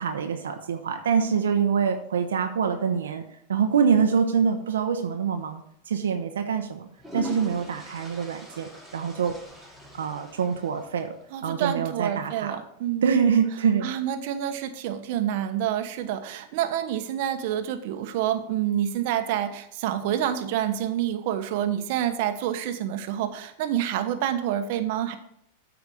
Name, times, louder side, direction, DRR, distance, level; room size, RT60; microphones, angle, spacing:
voice 1, 0.0-3.2 3.5-5.6 5.9-6.9 7.1-9.4 9.9-11.1 11.4-12.5 13.0-13.9, right 6 dB, 90° right, 5 dB, 0.8 m, -25 dB
sound 1, 5.3-5.5 6.7-11.3, left 1 dB, ahead, 2.5 m, -42 dB
voice 2, 11.3-13.1 13.8-25.1, right 10 dB, 60° right, 7 dB, 1.1 m, -28 dB
8.1 x 5.0 x 7.0 m, 0.72 s
hypercardioid pair, 120°, 0 cm